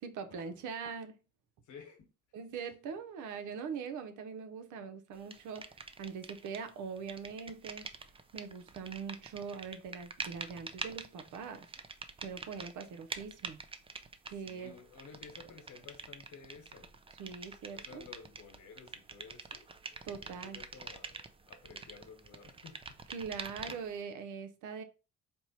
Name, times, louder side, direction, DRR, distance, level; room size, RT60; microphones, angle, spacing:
voice 1, 0.0-1.2 2.3-7.9 8.3-11.7 12.2-13.6 14.3-14.7 17.2-18.0 20.0-20.6 23.1-24.8, right 6 dB, 80° right, 0.7 m, -42 dB
voice 2, 1.7-2.1 14.4-16.9 17.7-19.6 20.1-21.2 21.5-23.0 23.3-23.8, left 6 dB, 70° left, 1.2 m, -54 dB
sound 1, 5.3-6.7 7.0-24.0, right 4 dB, 20° right, 0.4 m, -46 dB
4.4 x 2.1 x 4.2 m
cardioid pair, 90°, 30 cm